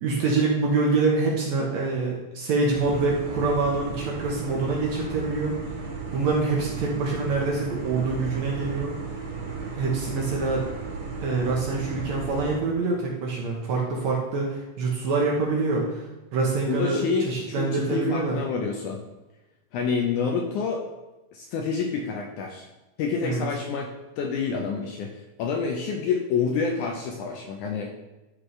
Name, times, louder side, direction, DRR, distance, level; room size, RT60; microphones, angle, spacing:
voice 1, 0.0-5.5 6.1-8.9 9.7-10.7 11.2-16.0 16.3-18.4 23.2-23.4, right 3 dB, 65° right, -2 dB, 2.0 m, -25 dB
sound 1, 2.7-12.6, right 4 dB, 80° right, 3.7 m, -34 dB
voice 2, 16.7-19.0 19.7-20.8 21.3-22.7 23.0-23.9 24.2-27.9, left 5 dB, 75° left, 1 dB, 1.9 m, -28 dB
12.0 x 4.7 x 3.2 m, 1.1 s
omnidirectional pair, 4.1 m